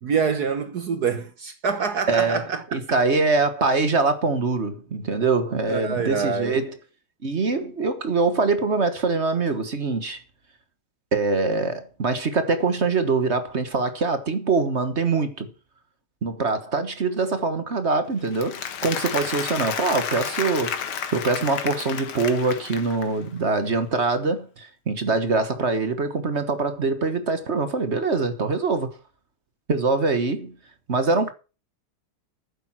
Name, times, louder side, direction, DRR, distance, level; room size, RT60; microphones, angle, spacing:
voice 1, 0.0-2.8 5.7-6.6, right 5 dB, 55° right, 1.4 m, -26 dB
voice 2, 2.1-2.4 2.7-6.7 7.2-10.2 11.1-15.5 16.2-20.8 21.1-28.9 29.7-30.5 30.9-31.3, right 3 dB, 35° right, 1.3 m, -23 dB
Applause, 18.2-23.3, left 8 dB, 80° left, 2.2 m, -31 dB
11.5 x 9.2 x 6.1 m
omnidirectional pair, 2.3 m